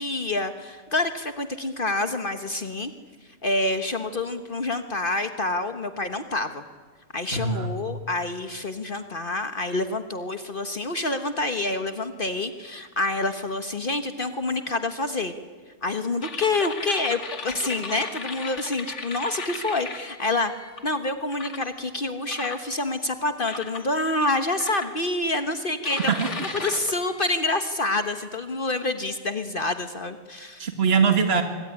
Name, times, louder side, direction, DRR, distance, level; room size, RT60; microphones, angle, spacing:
voice 1, 0.0-2.9 3.4-6.6 7.1-15.3 15.8-20.5 20.8-26.1 26.6-30.7, left 2 dB, 50° left, 8 dB, 1.5 m, -27 dB
voice 2, 7.3-7.7 26.1-26.5 30.6-31.4, right 5 dB, 60° right, 6 dB, 2.1 m, -22 dB
sound 1, 16.2-20.8 21.3-21.7 22.3-23.0 23.5-23.9 24.6-25.3 25.8-28.2, left 3 dB, 80° left, 2.4 m, -37 dB
25.5 x 23.5 x 10.0 m, 1.4 s
omnidirectional pair, 1.2 m